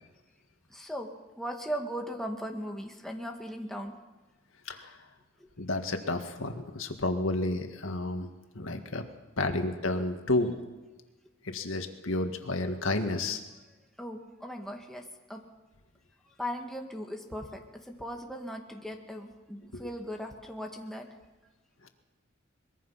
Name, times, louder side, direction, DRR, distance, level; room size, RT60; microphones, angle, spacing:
voice 1, 0.7-1.1 1.4-3.9 5.4-5.5 14.0-15.4 16.4-17.6 17.9-21.1, equal, ahead, 2 dB, 1.9 m, -38 dB
voice 2, 4.7-5.1 5.6-9.1 9.4-10.5 11.4-13.4 19.7-19.9 21.8-21.9, left 2 dB, 85° left, 6 dB, 2.0 m, -31 dB
23.5 x 21.5 x 5.8 m, 1.2 s
head